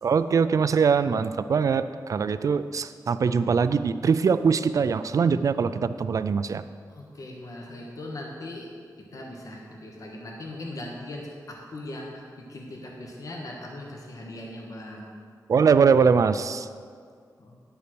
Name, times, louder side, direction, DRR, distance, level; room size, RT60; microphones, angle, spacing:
voice 1, 0.0-6.6 15.5-16.7, right 6 dB, 55° right, 13 dB, 0.4 m, -22 dB
voice 2, 6.9-8.7 9.0-15.1 17.4-17.6, left 1 dB, 55° left, -1 dB, 1.3 m, -39 dB
9.8 x 5.6 x 6.1 m, 2.1 s
wide cardioid pair, 130°, 7 cm